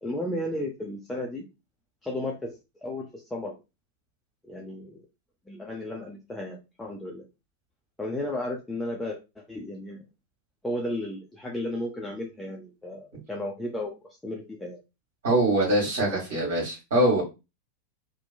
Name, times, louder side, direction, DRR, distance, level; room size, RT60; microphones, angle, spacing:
voice 1, 0.0-1.4 2.0-3.5 4.4-5.0 5.5-7.3 8.0-10.0 10.6-13.9 14.2-14.8 16.3-16.6, left 1 dB, 10° left, -1 dB, 0.5 m, -34 dB
voice 2, 15.2-17.2, right 1 dB, 60° right, -2 dB, 1.5 m, -23 dB
2.9 x 2.1 x 2.3 m, 0.26 s
figure-of-eight pair, 90°, 0 cm